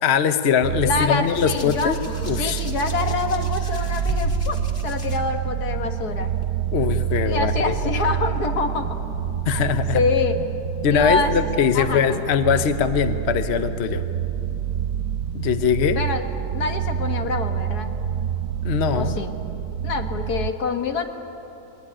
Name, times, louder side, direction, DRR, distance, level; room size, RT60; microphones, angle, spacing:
voice 1, 0.0-2.0 2.3-2.6 6.7-7.7 9.4-10.0 10.8-14.0 15.3-16.0 18.6-19.2, left 7 dB, 50° left, 9 dB, 0.9 m, -21 dB
sound 1, 0.6-20.5, right 9 dB, 65° right, 1.3 m, -27 dB
voice 2, 0.8-1.9 2.4-6.3 7.3-9.0 9.5-9.6 9.9-10.4 10.9-11.3 11.7-12.2 16.0-16.3 16.5-18.0 18.9-19.4 19.8-21.1, left 4 dB, 65° left, 5 dB, 1.9 m, -26 dB
Hands, 1.3-5.2 6.2-6.4, left 2 dB, 35° left, 2.1 m, -33 dB
21.5 x 20.0 x 10.0 m, 3.0 s
omnidirectional pair, 1.8 m